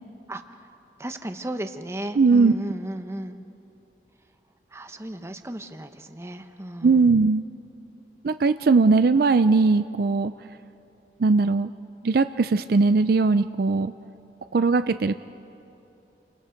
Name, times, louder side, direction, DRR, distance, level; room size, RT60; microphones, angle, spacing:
voice 1, 0.3-0.7 1.0-3.4 4.7-7.1, right 1 dB, 15° right, 8 dB, 0.9 m, -35 dB
voice 2, 2.2-2.5 6.8-7.4 8.2-10.3 11.2-11.7 12.0-13.9 14.5-15.1, right 4 dB, 55° right, 11 dB, 0.4 m, -19 dB
29.5 x 25.0 x 5.2 m, 2.9 s
head